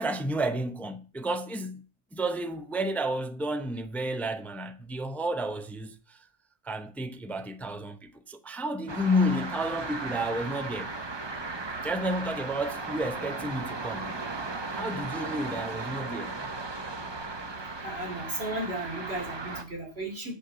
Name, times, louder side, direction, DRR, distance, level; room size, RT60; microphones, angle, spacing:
voice 1, 0.0-1.8 2.1-6.3 6.6-11.0 11.8-14.1 14.7-16.4, equal, ahead, 0.4 m, -31 dB
sound 1, 8.9-19.6, right 3 dB, 25° right, 0.7 m, -36 dB
voice 2, 17.8-20.3, right 1 dB, 65° right, 3.1 m, -35 dB
6.7 x 6.5 x 6.6 m
omnidirectional pair, 1.2 m